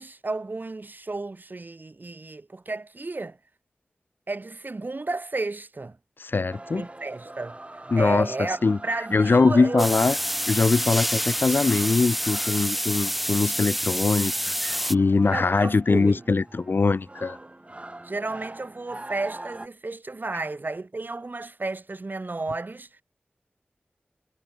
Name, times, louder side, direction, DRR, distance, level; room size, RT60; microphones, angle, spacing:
voice 1, 0.0-3.4 4.3-6.0 6.7-9.9 15.3-16.2 18.0-23.0, right 3 dB, 55° right, 3.0 m, -32 dB
voice 2, 6.2-6.8 7.9-8.3 8.6-8.8 9.1-10.1 10.5-17.4, left 4 dB, 65° left, 0.5 m, -22 dB
sound 1, 6.5-19.7, right 2 dB, 30° right, 5.7 m, -43 dB
sound 2, 9.8-14.9, equal, ahead, 0.8 m, -27 dB
wide cardioid pair, 60°, 4 cm